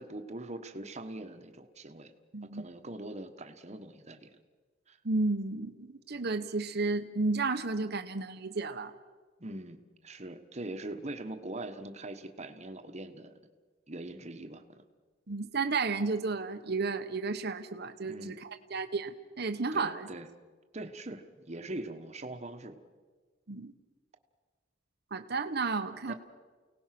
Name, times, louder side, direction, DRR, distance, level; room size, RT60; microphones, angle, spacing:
voice 1, 0.0-2.1 2.4-4.4 4.9-5.0 9.4-13.4 13.9-14.8 18.0-18.3 19.7-20.3 20.7-22.8 26.1-26.2, right 2 dB, 35° right, 7 dB, 1.4 m, -42 dB
voice 2, 2.3-2.6 5.0-8.9 15.3-18.4 18.7-20.1 23.5-23.7 25.1-26.1, right 3 dB, 60° right, 7 dB, 1.0 m, -32 dB
29.5 x 18.0 x 6.0 m, 1.4 s
head